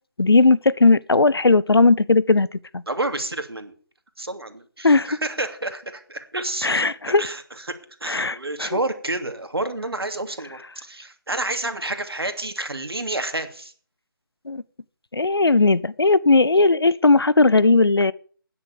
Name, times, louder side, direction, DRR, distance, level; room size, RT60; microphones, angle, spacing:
voice 1, 0.2-2.8 4.8-5.1 6.6-7.2 8.1-8.8 14.5-14.6 15.1-18.1, left 3 dB, 85° left, 0.8 m, -17 dB
voice 2, 2.9-3.7 4.2-6.9 7.2-7.7 8.0-13.7, right 2 dB, 85° right, 2.7 m, -29 dB
11.0 x 10.0 x 6.8 m
figure-of-eight pair, 160°, 12 cm